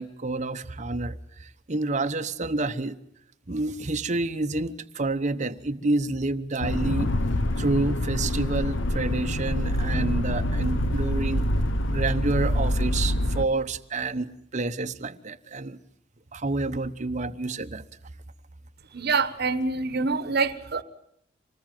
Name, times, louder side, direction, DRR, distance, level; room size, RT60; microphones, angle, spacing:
voice 1, 0.0-3.0 3.5-7.1 7.6-11.5 11.9-15.8 16.3-17.8, right 2 dB, 40° right, 1.0 m, -29 dB
sound 1, 6.6-13.4, left 1 dB, 70° left, 1.2 m, -26 dB
voice 2, 18.9-20.8, right 4 dB, 55° right, 1.3 m, -26 dB
26.0 x 19.5 x 9.2 m
head